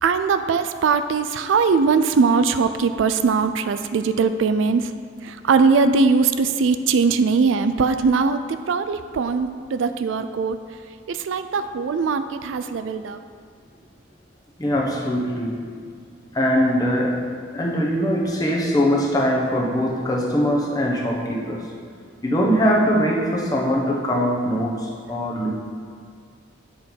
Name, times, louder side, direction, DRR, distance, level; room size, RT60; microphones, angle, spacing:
voice 1, 0.0-4.9 5.2-10.6 11.1-13.2, right 4 dB, 75° right, 10 dB, 0.4 m, -20 dB
voice 2, 14.6-15.7 16.3-21.7 22.2-25.5, equal, 20° left, -2 dB, 0.9 m, -22 dB
7.7 x 4.5 x 5.3 m, 2.2 s
head